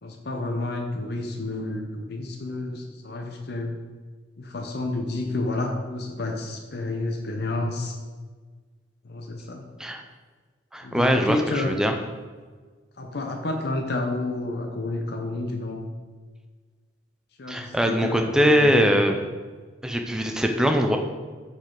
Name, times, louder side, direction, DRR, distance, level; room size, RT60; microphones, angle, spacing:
voice 1, 0.0-3.8 4.4-8.0 9.0-9.6 10.8-11.7 13.0-15.9 17.4-18.9, left 2 dB, 55° left, 2 dB, 0.7 m, -30 dB
voice 2, 10.7-11.9 17.5-19.2 19.8-21.0, equal, 5° right, 4 dB, 0.4 m, -22 dB
7.5 x 4.6 x 3.8 m, 1.5 s
head